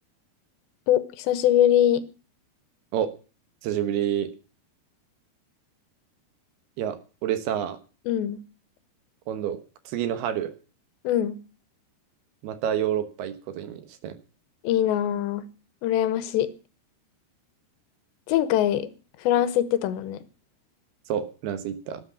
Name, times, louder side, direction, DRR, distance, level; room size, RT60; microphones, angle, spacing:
voice 1, 0.9-2.0 8.1-8.4 11.0-11.4 14.6-15.5 15.8-16.5 18.3-18.9 19.2-20.2, left 11 dB, 90° left, 3.3 m, -23 dB
voice 2, 3.6-4.3 6.8-7.8 9.3-9.6 9.9-10.5 12.4-14.2 21.1-22.0, right 10 dB, 70° right, 3.0 m, -28 dB
12.5 x 9.7 x 8.4 m
omnidirectional pair, 5.0 m